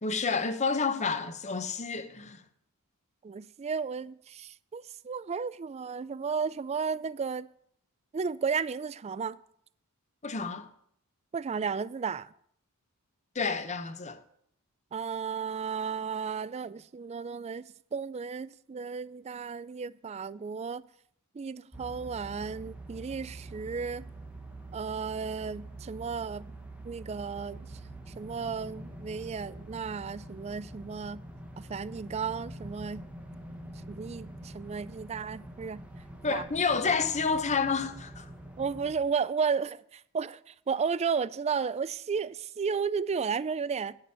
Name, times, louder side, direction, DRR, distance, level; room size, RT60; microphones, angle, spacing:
voice 1, 0.0-2.4 10.2-10.7 13.3-14.2 36.2-38.3, left 5 dB, 30° left, 0.9 m, -29 dB
voice 2, 3.2-7.5 8.1-9.4 11.3-12.3 14.9-17.7 17.9-20.8 21.3-24.1 24.7-26.4 26.9-27.6 28.2-31.2 31.6-33.0 33.9-35.8 36.3-36.4 38.6-44.0, right 5 dB, 30° right, 0.3 m, -33 dB
sound 1, 21.7-38.9, right 1 dB, 5° right, 1.0 m, -45 dB
9.9 x 6.8 x 8.5 m
head